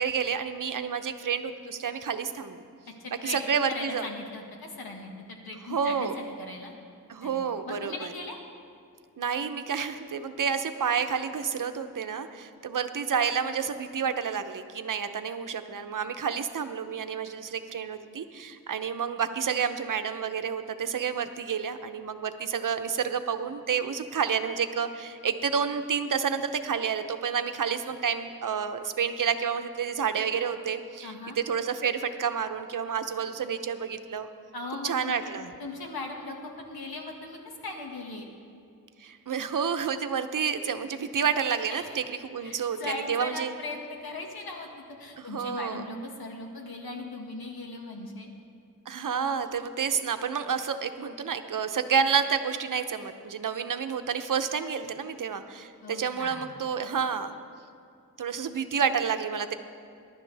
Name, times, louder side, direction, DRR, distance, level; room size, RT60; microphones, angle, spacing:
voice 1, 0.0-2.6 3.2-4.1 5.7-6.2 7.1-8.1 9.2-34.3 34.8-35.5 39.0-43.5 45.2-45.8 48.9-57.3 58.2-59.5, right 7 dB, 60° right, 9 dB, 0.8 m, -29 dB
voice 2, 3.0-6.7 7.2-8.4 31.0-31.4 34.5-35.2 35.6-38.3 41.7-42.0 42.4-44.7 45.0-48.3 55.8-56.5, left 2 dB, 85° left, 1 dB, 1.8 m, -39 dB
21.5 x 11.0 x 3.4 m, 2.4 s
wide cardioid pair, 105°, 36 cm